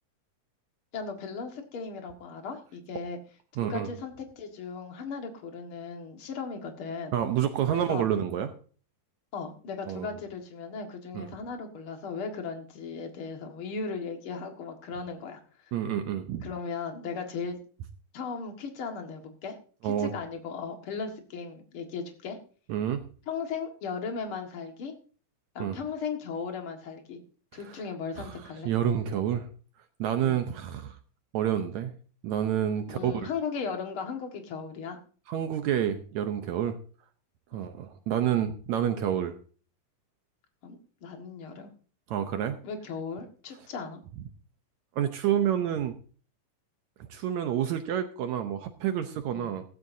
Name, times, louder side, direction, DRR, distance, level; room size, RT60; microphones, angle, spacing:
voice 1, 0.9-3.2 3.6-7.1 7.7-8.1 9.3-15.8 16.4-17.6 18.1-19.6 19.8-22.4 23.3-24.9 25.5-27.2 27.5-28.7 30.2-30.4 32.9-35.0 37.5-37.7 40.6-41.7 42.6-44.0 49.3-49.5, left 5 dB, 45° left, 4 dB, 2.1 m, -37 dB
voice 2, 3.6-3.9 7.1-8.5 9.9-10.1 11.2-11.3 15.7-16.4 19.8-20.1 22.7-23.0 25.6-25.8 28.2-28.3 28.7-29.5 30.0-31.0 31.3-31.9 32.2-33.1 35.3-36.8 37.5-39.4 42.1-42.6 45.0-46.0 47.1-49.6, right 10 dB, 75° right, 8 dB, 1.8 m, -28 dB
15.5 x 14.0 x 2.7 m, 0.40 s
omnidirectional pair, 4.0 m